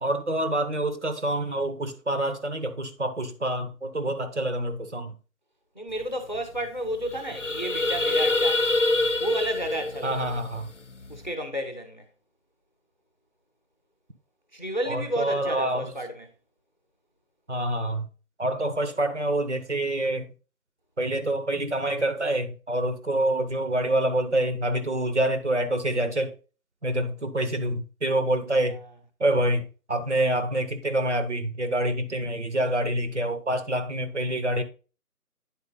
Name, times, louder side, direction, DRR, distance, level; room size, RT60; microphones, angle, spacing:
voice 1, 0.0-5.1 10.0-10.7 14.9-15.9 17.5-18.1 18.4-20.3 21.0-26.4 26.8-28.8 29.2-34.6, right 1 dB, 45° right, 1.0 m, -26 dB
voice 2, 5.7-8.6 9.2-10.4 11.1-12.0 14.5-16.3 28.7-28.8, right 1 dB, 30° left, 0.9 m, -32 dB
sound 1, 6.0-6.1 6.3-6.6 6.9-11.3, left 2 dB, 50° left, 0.5 m, -26 dB
9.8 x 4.3 x 4.0 m
figure-of-eight pair, 180°, 47 cm